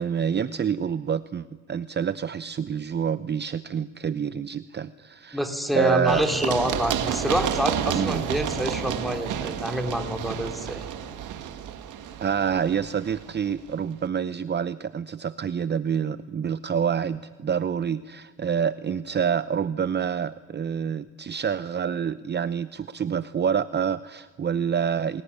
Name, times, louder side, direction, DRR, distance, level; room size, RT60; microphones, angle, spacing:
voice 1, 0.0-5.4 5.7-6.2 7.9-8.2 12.2-25.2, right 7 dB, 35° right, 14 dB, 0.7 m, -27 dB
voice 2, 5.3-10.9, equal, ahead, 4 dB, 3.7 m, -27 dB
Run, 6.1-13.7, right 9 dB, 85° right, 1.9 m, -30 dB
27.0 x 20.5 x 9.9 m, 1.5 s
cardioid pair, 90°, 30 cm